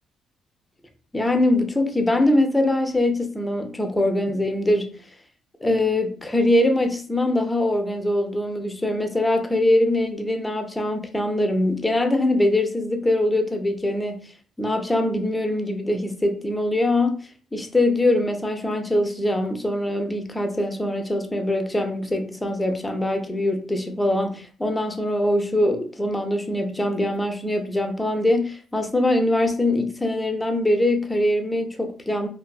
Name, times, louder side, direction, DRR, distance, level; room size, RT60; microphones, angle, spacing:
voice 1, 1.1-5.0 5.6-14.2 14.6-17.2 17.5-32.3, left 1 dB, 10° left, 0.5 m, -23 dB
2.5 x 2.4 x 2.3 m
cardioid pair, 90°, 0 cm